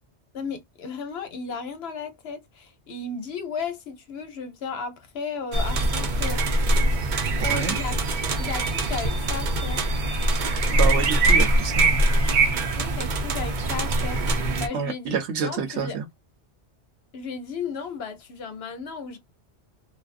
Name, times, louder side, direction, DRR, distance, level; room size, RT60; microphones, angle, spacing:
voice 1, 0.3-6.5 7.4-8.0 8.4-9.8 12.8-16.0 17.1-19.2, left 5 dB, 75° left, 0.9 m, -35 dB
sound 1, 5.5-14.7, right 2 dB, 55° right, 0.6 m, -23 dB
voice 2, 7.4-7.7 10.7-11.8 14.7-16.1, right 6 dB, 85° right, 1.0 m, -28 dB
2.4 x 2.4 x 2.3 m
omnidirectional pair, 1.1 m